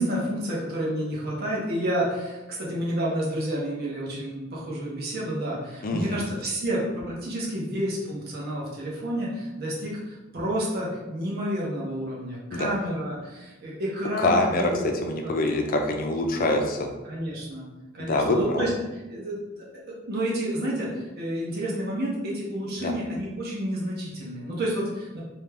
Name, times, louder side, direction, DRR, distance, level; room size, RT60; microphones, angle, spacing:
voice 1, 0.0-14.9 15.2-15.3 17.1-17.7 17.9-18.7 19.1-25.2, right 1 dB, 50° right, -5 dB, 0.8 m, -30 dB
voice 2, 5.8-6.2 12.5-12.7 14.2-14.7 15.0-16.9 18.0-18.7 22.8-22.9, left 2 dB, 45° left, 3 dB, 0.4 m, -25 dB
2.5 x 2.2 x 3.3 m, 1.1 s
head